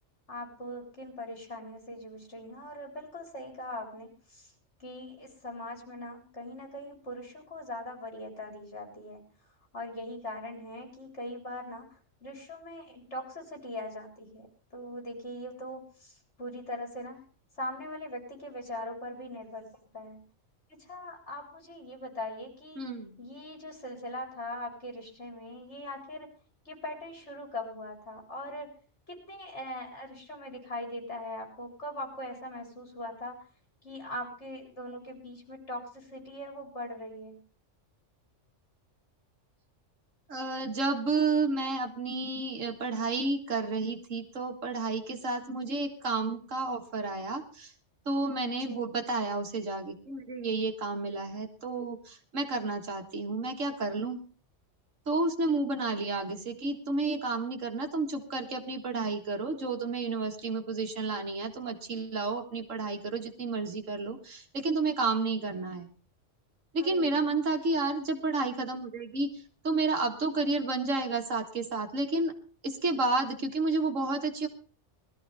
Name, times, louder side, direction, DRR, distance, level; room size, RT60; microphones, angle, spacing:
voice 1, 0.3-4.5 4.8-9.2 9.7-14.5 14.7-17.2 17.6-19.7 19.9-20.2 20.8-22.8 23.2-26.3 26.6-28.7 29.1-33.4 33.8-37.4 48.4-48.8 66.8-67.2, left 1 dB, 65° left, 1 dB, 4.4 m, -41 dB
voice 2, 22.8-23.2 40.3-47.7 48.1-54.2 55.1-65.9 66.7-72.3 72.6-74.5, right 3 dB, 85° right, 5 dB, 2.1 m, -31 dB
20.5 x 13.5 x 3.4 m, 0.39 s
omnidirectional pair, 1.3 m